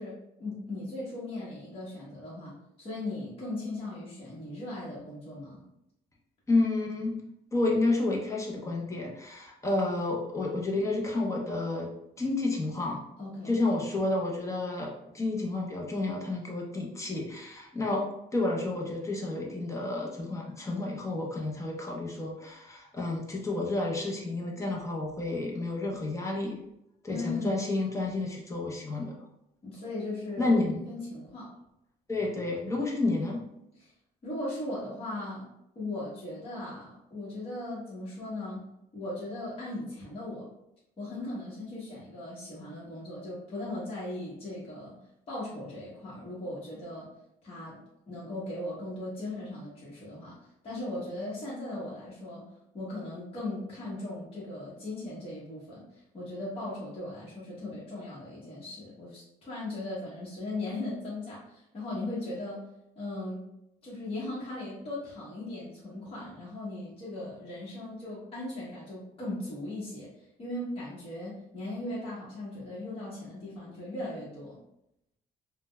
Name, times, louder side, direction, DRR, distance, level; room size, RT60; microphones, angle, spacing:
voice 1, 0.0-5.6 13.2-13.6 27.1-27.7 29.6-30.5 30.9-31.5 34.2-35.4 35.7-38.6 38.9-40.5 41.0-44.9 45.3-47.1 47.4-47.8 48.1-50.4 50.6-52.4 52.7-62.6 63.0-63.4 63.8-74.6, left 2 dB, 35° left, -8 dB, 1.1 m, -38 dB
voice 2, 6.5-7.2 7.5-11.9 12.2-13.0 13.4-18.0 18.3-26.6 27.0-29.1 30.4-30.8 32.1-33.4, left 2 dB, 20° left, -1 dB, 0.7 m, -30 dB
3.7 x 2.2 x 2.2 m, 0.82 s
cardioid pair, 110°, 17 cm